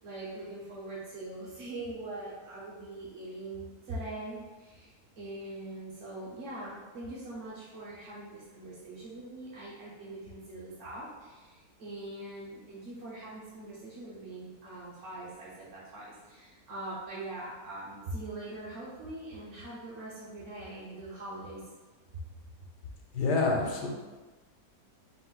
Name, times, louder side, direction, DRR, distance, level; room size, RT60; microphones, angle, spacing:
voice 1, 0.0-21.6 22.1-22.2, right 2 dB, 55° right, -9 dB, 1.0 m, -42 dB
voice 2, 23.1-23.9, left 3 dB, 85° left, 0 dB, 1.4 m, -27 dB
4.2 x 2.6 x 3.8 m, 1.2 s
omnidirectional pair, 1.8 m